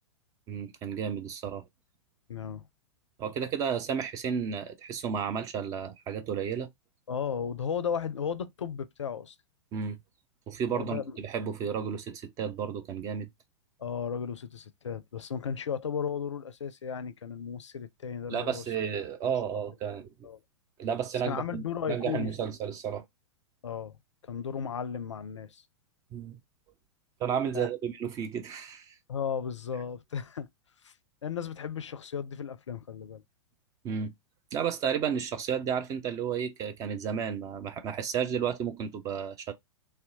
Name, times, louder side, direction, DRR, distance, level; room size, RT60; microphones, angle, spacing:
voice 1, 0.5-1.6 3.2-6.7 9.7-10.0 10.5-13.3 18.3-20.1 20.8-23.0 26.1-26.4 27.2-28.9 33.8-34.1 34.5-39.5, right 7 dB, 20° right, 0.4 m, -32 dB
voice 2, 2.3-2.7 7.1-9.4 10.7-11.1 13.8-18.6 20.2-20.4 21.2-22.5 23.6-24.0 24.2-25.6 27.5-27.7 29.1-30.5 30.8-30.9 31.2-33.2, left 7 dB, 70° left, 0.4 m, -35 dB
2.6 x 2.0 x 2.7 m
figure-of-eight pair, 100°, 16 cm